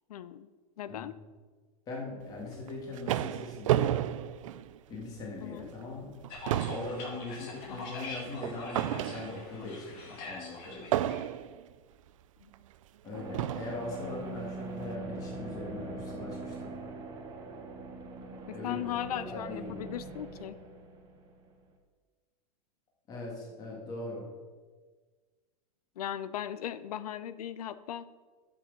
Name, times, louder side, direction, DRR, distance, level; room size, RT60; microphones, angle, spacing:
voice 1, 0.1-0.5 0.8-1.2 5.4-5.7 7.7-7.9 12.4-12.5 18.5-20.6 26.0-28.0, left 11 dB, 75° left, 15 dB, 0.6 m, -38 dB
voice 2, 1.9-4.0 4.9-6.2 6.6-11.1 13.0-16.9 18.5-19.8 23.1-24.3, left 2 dB, 20° left, -2 dB, 2.1 m, -41 dB
sound 1, 2.5-5.2 5.6-5.8 6.1-9.7 10.9-11.7 12.5-12.6 13.3-13.9, right 12 dB, 55° right, 0.4 m, -32 dB
sound 2, 6.3-11.2, left 3 dB, 35° left, 2.3 m, -44 dB
sound 3, 13.1-21.7, right 3 dB, 20° right, 1.0 m, -42 dB
11.0 x 6.3 x 5.4 m, 1.4 s
supercardioid pair, 170°, 19 cm